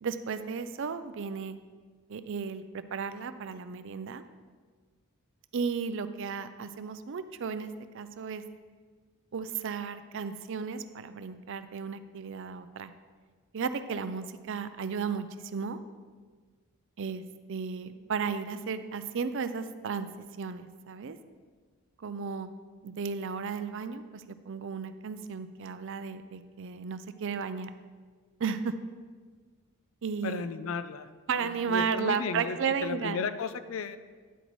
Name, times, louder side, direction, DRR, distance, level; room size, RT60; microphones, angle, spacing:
voice 1, 0.0-1.6 2.1-4.2 5.5-7.7 7.9-8.4 9.3-12.9 13.5-15.3 15.5-15.8 17.0-17.2 17.5-20.1 20.4-21.2 22.0-22.5 22.8-27.7 28.4-28.7 30.0-30.5 31.3-33.3, right 6 dB, 55° right, 11 dB, 0.4 m, -34 dB
voice 2, 30.2-31.1 31.4-34.0, left 5 dB, 65° left, 12 dB, 0.4 m, -34 dB
10.0 x 8.0 x 3.1 m, 1.5 s
head